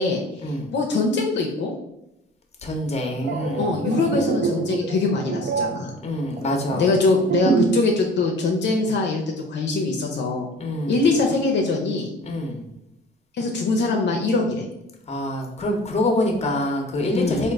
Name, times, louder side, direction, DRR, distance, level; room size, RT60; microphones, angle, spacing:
voice 1, 0.0-1.7 3.6-5.9 6.8-10.5 10.9-12.1 13.4-14.6 17.1-17.5, left 3 dB, 65° left, 1 dB, 0.6 m, -23 dB
voice 2, 2.6-3.7 6.0-6.9 10.6-11.0 12.2-12.6 15.1-17.5, left 1 dB, 35° left, 2 dB, 0.8 m, -25 dB
sound 1, 3.1-7.9 8.2-8.4, right 5 dB, 55° right, 0.6 m, -26 dB
3.6 x 2.4 x 3.4 m, 0.88 s
cardioid pair, 90°, 20 cm